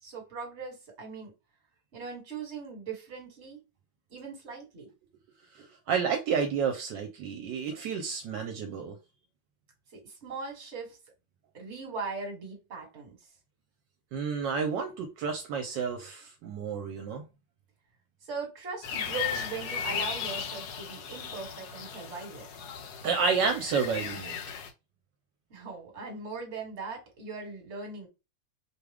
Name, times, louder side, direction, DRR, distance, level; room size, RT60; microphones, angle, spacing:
voice 1, 0.0-1.3 1.9-3.6 4.1-4.9 9.9-11.0 11.5-13.2 18.2-22.4 25.5-28.1, right 4 dB, 40° right, 1.6 m, -39 dB
voice 2, 5.5-9.0 14.1-17.2 23.0-24.3, right 5 dB, 75° right, 1.3 m, -30 dB
sound 1, 18.8-24.7, left 7 dB, 65° left, 1.1 m, -36 dB
4.8 x 2.3 x 3.4 m
omnidirectional pair, 2.0 m